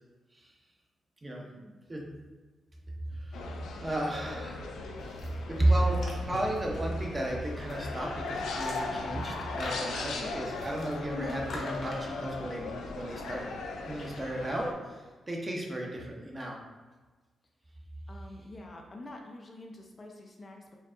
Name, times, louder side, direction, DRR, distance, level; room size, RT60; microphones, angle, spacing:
voice 1, 1.2-2.1 3.1-3.4 3.8-4.6 5.5-13.5 13.9-16.6, right 1 dB, 25° right, -1 dB, 0.7 m, -33 dB
sound 1, 3.3-14.7, left 3 dB, 90° left, 0.4 m, -38 dB
sound 2, 5.0-14.1, left 2 dB, 60° left, 1.0 m, -47 dB
voice 2, 18.1-20.8, left 1 dB, 30° left, 1 dB, 0.5 m, -47 dB
4.5 x 2.4 x 3.7 m, 1.3 s
cardioid pair, 105°, 0 cm